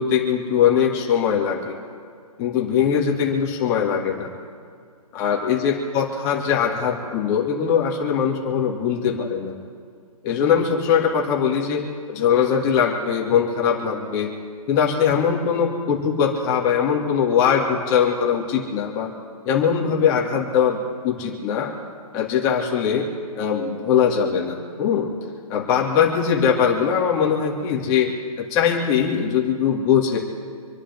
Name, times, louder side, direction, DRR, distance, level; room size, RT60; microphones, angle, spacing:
voice 1, 0.0-1.7 2.4-4.3 5.1-9.6 10.2-14.3 14.7-19.1 19.4-21.7 22.1-23.1 23.4-25.1 25.5-28.1 28.4-30.2, left 7 dB, 15° left, -2 dB, 2.3 m, -21 dB
27.5 x 11.0 x 3.6 m, 2.3 s
hypercardioid pair, 165°, 19 cm